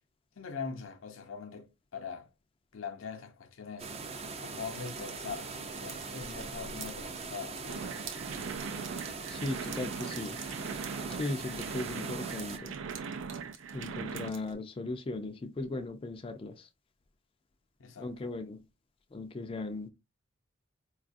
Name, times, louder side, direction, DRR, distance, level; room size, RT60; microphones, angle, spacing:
voice 1, 0.4-2.3 2.7-3.9 4.4-7.8 17.8-18.3, left 5 dB, 80° left, 0.6 m, -42 dB
sound 1, 3.8-12.6, right 4 dB, 30° right, 0.5 m, -41 dB
sound 2, 4.5-14.5, right 6 dB, 70° right, 0.9 m, -50 dB
sound 3, 7.7-14.3, right 5 dB, 90° right, 0.4 m, -40 dB
voice 2, 9.3-10.4 11.1-12.7 13.7-16.7 18.0-18.6 19.1-19.9, left 2 dB, 30° left, 0.4 m, -37 dB
4.7 x 2.3 x 2.5 m
head